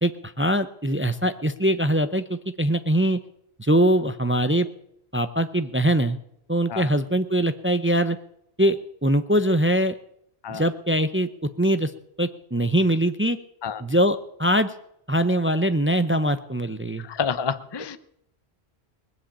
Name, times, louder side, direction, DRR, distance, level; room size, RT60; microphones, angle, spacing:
voice 1, 0.0-3.2 3.6-4.7 5.1-6.2 6.5-8.2 8.6-9.9 10.5-11.9 12.2-13.4 13.8-14.7 15.1-17.1, right 1 dB, 15° right, 11 dB, 0.5 m, -22 dB
voice 2, 17.0-18.0, left 6 dB, 25° left, 12 dB, 0.7 m, -29 dB
20.0 x 7.8 x 8.6 m, 0.73 s
omnidirectional pair, 1.1 m